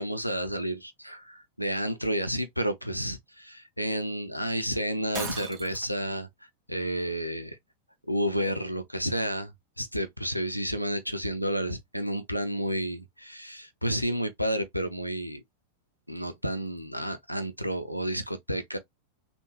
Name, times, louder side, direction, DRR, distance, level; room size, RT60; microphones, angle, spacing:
voice 1, 0.0-6.3 6.7-7.6 8.1-15.4 16.1-18.8, equal, 90° left, 0.5 m, -31 dB
Shatter, 5.1-6.0, right 4 dB, 35° right, 1.1 m, -37 dB
3.5 x 2.2 x 2.9 m
figure-of-eight pair, 90°, 0 cm